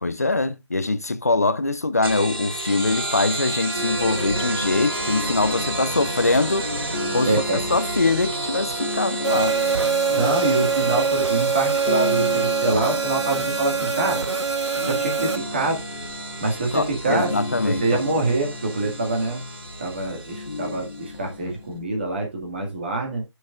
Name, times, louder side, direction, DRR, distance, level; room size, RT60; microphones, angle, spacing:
voice 1, 0.0-6.7 7.1-9.6 16.7-17.8, left 3 dB, 30° left, 0.6 m, -23 dB
sound 1, 2.0-21.2, right 2 dB, 50° right, 5.0 m, -31 dB
sound 2, 3.7-21.9, left 2 dB, 50° left, 1.5 m, -35 dB
voice 2, 7.3-7.8 10.1-14.2 14.8-15.8 16.4-17.3 17.6-19.4 19.8-23.2, right 2 dB, 20° right, 2.0 m, -25 dB
sound 3, 9.2-15.4, right 5 dB, 65° right, 0.7 m, -24 dB
11.0 x 6.5 x 2.4 m
figure-of-eight pair, 175°, 16 cm